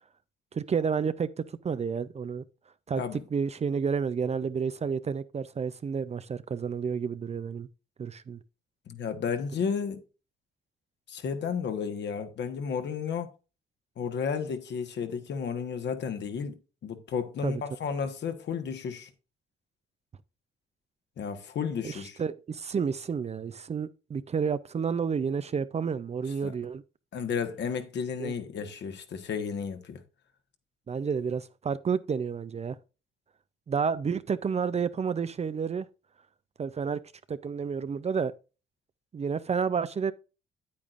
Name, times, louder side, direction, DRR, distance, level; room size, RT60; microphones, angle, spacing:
voice 1, 0.5-2.4 2.9-3.0 3.3-7.7 8.0-8.4 17.4-17.6 21.8-26.8 28.2-28.3 30.9-32.8 33.7-35.9 36.6-37.0 37.3-38.3 39.1-40.1, right 6 dB, 35° right, 0.5 m, -30 dB
voice 2, 8.9-10.0 11.1-13.3 14.0-16.6 16.8-19.1 21.2-22.2 26.4-26.5 27.1-30.0, left 6 dB, 60° left, 1.4 m, -32 dB
8.8 x 8.5 x 2.5 m
cardioid pair, 90°, 20 cm